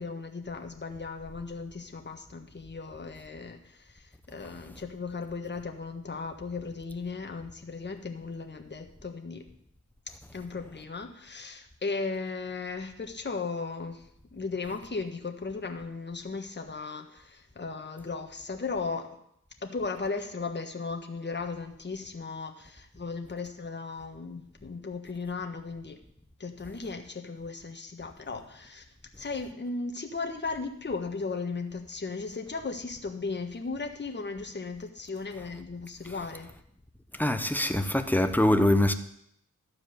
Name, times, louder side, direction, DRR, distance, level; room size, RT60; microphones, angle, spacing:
voice 1, 0.0-9.4 10.3-19.2 19.6-26.0 26.4-28.8 29.2-36.5, left 4 dB, 35° left, 1.4 m, -36 dB
voice 2, 37.2-38.9, left 1 dB, 5° left, 0.9 m, -23 dB
12.5 x 4.8 x 8.0 m
wide cardioid pair, 80°, 31 cm